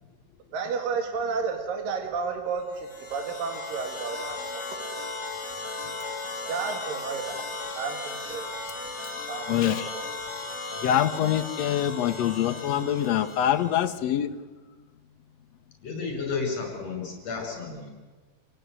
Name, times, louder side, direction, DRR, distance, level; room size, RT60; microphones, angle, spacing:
voice 1, 0.5-4.6 6.5-7.4 7.7-8.5 9.3-10.1, right 5 dB, 70° right, 4 dB, 3.5 m, -32 dB
sound 1, 2.7-13.9, left 3 dB, 10° left, 1.6 m, -36 dB
voice 2, 9.5-9.9 10.8-14.3, left 10 dB, 80° left, 9 dB, 1.5 m, -25 dB
voice 3, 15.8-17.9, left 4 dB, 45° left, 2 dB, 7.4 m, -32 dB
28.0 x 17.0 x 9.5 m, 1.4 s
omnidirectional pair, 4.1 m